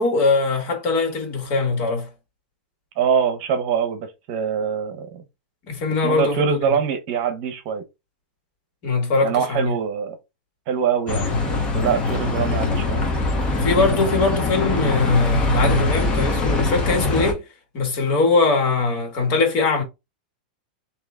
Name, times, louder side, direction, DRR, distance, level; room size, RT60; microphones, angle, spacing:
voice 1, 0.0-2.1 5.6-6.6 8.8-9.7 13.6-17.5 17.7-19.8, left 3 dB, 40° left, 1.9 m, -21 dB
voice 2, 3.0-5.2 6.0-7.8 9.2-10.2 10.7-13.0, right 7 dB, 45° right, 1.1 m, -24 dB
Bus, 11.1-17.3, left 2 dB, 20° left, 1.0 m, -22 dB
3.8 x 2.9 x 3.6 m
supercardioid pair, 155°, 5 cm